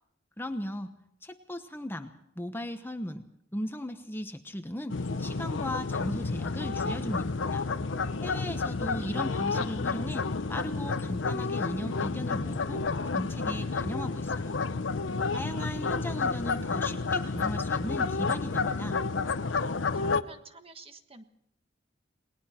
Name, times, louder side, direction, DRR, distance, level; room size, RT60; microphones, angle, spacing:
voice 1, 0.4-0.9 1.2-3.2 3.5-7.7 8.2-12.8 13.1-14.6 15.3-19.0, left 1 dB, 10° left, 7 dB, 1.1 m, -37 dB
sound 1, 4.9-20.2, left 4 dB, 90° left, 0.8 m, -30 dB
voice 2, 8.7-9.1 9.4-9.7 19.9-21.2, right 2 dB, 30° right, 7 dB, 1.5 m, -49 dB
29.5 x 20.0 x 4.4 m, 0.72 s
head